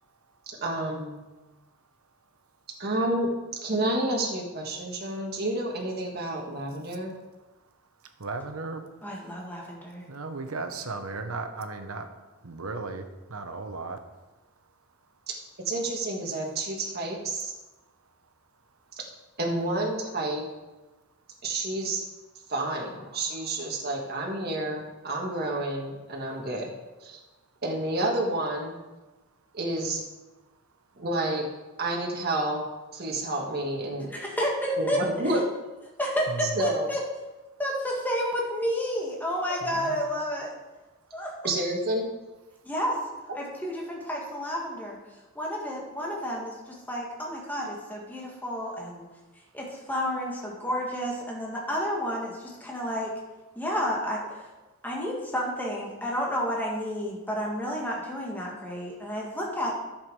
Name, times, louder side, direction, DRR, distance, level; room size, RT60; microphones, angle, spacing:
voice 1, 0.5-1.2 2.8-7.1 15.3-15.4 15.6-17.5 19.4-20.4 21.4-22.0 22.5-26.7 27.0-27.2 27.6-28.8 29.5-30.0 31.0-31.5 31.8-32.6 32.9-34.1 34.8-35.4 36.6-36.9 41.4-42.1, right 1 dB, 50° right, -1 dB, 1.7 m, -29 dB
voice 2, 8.2-8.8 10.1-12.1 12.4-13.0 13.3-14.0 36.3-36.6 39.6-40.0, right 3 dB, 85° right, 7 dB, 1.1 m, -35 dB
voice 3, 9.0-10.0 34.1-35.0 36.0-37.0 37.6-40.5 41.1-41.5 42.6-43.0 43.3-45.0 45.4-49.1 49.5-53.1 53.6-54.4 54.8-59.7, equal, 10° left, -3 dB, 2.0 m, -30 dB
10.5 x 7.2 x 4.8 m, 1.1 s
head